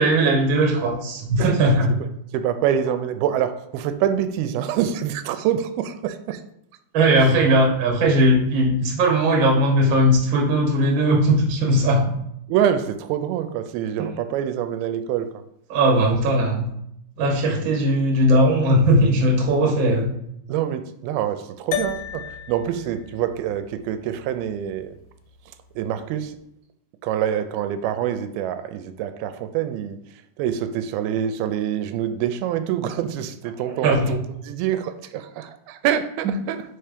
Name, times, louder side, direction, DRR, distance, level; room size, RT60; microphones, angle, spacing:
voice 1, 0.0-1.9 6.9-12.2 14.0-14.1 15.7-16.7 17.2-20.1 33.8-34.1 36.2-36.3, right 1 dB, 55° right, -1 dB, 1.4 m, -18 dB
voice 2, 2.3-6.4 7.2-7.3 12.5-15.4 19.6-19.7 20.5-25.0 25.5-26.4 27.0-34.2 34.4-36.6, right 10 dB, 85° right, 10 dB, 2.4 m, -26 dB
sound 1, 21.7-26.3, left 10 dB, 80° left, 2.0 m, -35 dB
5.1 x 4.4 x 5.0 m, 0.77 s
omnidirectional pair, 4.3 m